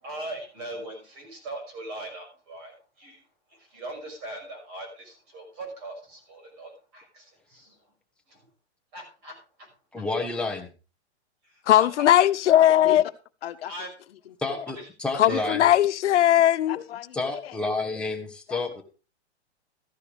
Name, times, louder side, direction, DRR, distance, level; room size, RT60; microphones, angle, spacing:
voice 1, 0.0-3.2 3.5-7.8 8.3-8.4 8.9-9.7 11.4-12.1 13.7-13.9 14.8-14.9 15.3-15.4, right 2 dB, 30° right, 6.1 m, -40 dB
voice 2, 9.9-10.7 14.4-15.6 17.1-18.8, left 3 dB, 5° left, 1.1 m, -30 dB
voice 3, 11.7-13.0 15.2-16.8, left 12 dB, 85° left, 0.8 m, -19 dB
voice 4, 13.4-14.7 16.7-17.6 18.5-18.6, left 11 dB, 60° left, 1.3 m, -39 dB
14.0 x 11.0 x 3.4 m
hypercardioid pair, 165°, 34 cm